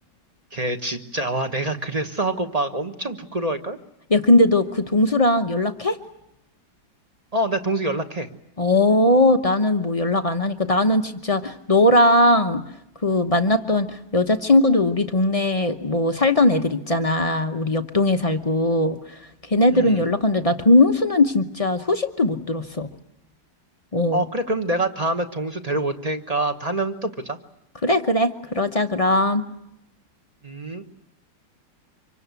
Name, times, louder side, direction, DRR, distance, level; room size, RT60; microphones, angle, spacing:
voice 1, 0.5-3.8 7.3-8.3 19.7-20.0 24.1-27.4 30.4-30.9, right 2 dB, 25° right, 6 dB, 0.9 m, -26 dB
voice 2, 4.1-6.0 8.6-12.6 13.0-22.9 23.9-24.2 27.8-29.4, left 1 dB, 45° left, 6 dB, 0.4 m, -19 dB
26.0 x 24.0 x 8.2 m, 0.82 s
omnidirectional pair, 2.3 m